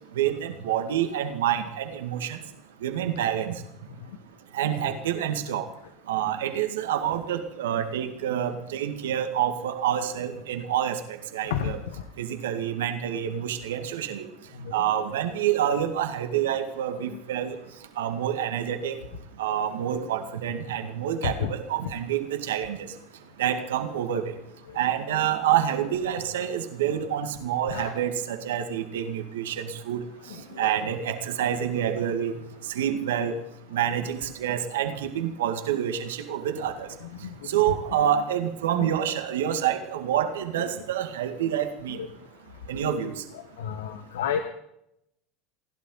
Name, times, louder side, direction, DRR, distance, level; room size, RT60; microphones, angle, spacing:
voice 1, 0.2-2.4 2.8-3.6 4.5-5.7 6.1-11.8 12.2-14.3 14.7-17.6 18.0-18.9 19.4-22.8 23.4-24.3 24.8-30.0 30.3-32.3 32.7-33.3 33.7-36.9 37.4-42.0 42.7-43.2, right 10 dB, 85° right, 6 dB, 2.1 m, -27 dB
voice 2, 43.6-44.4, left 8 dB, 85° left, 8 dB, 1.3 m, -29 dB
29.5 x 11.5 x 4.0 m, 0.77 s
hypercardioid pair, 90°, 0 cm